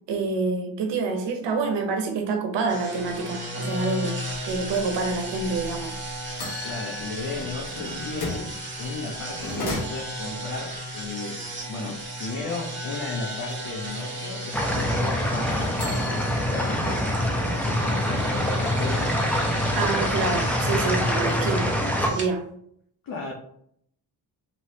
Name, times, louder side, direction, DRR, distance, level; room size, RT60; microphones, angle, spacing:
voice 1, 0.1-4.2 4.4-5.9 19.7-21.7 22.0-22.4, right 4 dB, 80° right, 4 dB, 0.8 m, -27 dB
sound 1, 2.7-22.3, right 1 dB, 25° right, 1.4 m, -35 dB
sound 2, 5.8-5.9 6.4-8.5 9.3-10.4 15.5-17.1 17.5-17.6 18.0-19.1, left 2 dB, 75° left, 1.3 m, -35 dB
voice 2, 6.6-8.5 8.8-11.4 11.7-19.2 23.0-23.3, left 3 dB, 55° left, -1 dB, 0.7 m, -35 dB
sound 3, 14.5-22.1, left 1 dB, 5° left, 0.6 m, -25 dB
3.1 x 3.0 x 2.7 m, 0.67 s
cardioid pair, 80°, 41 cm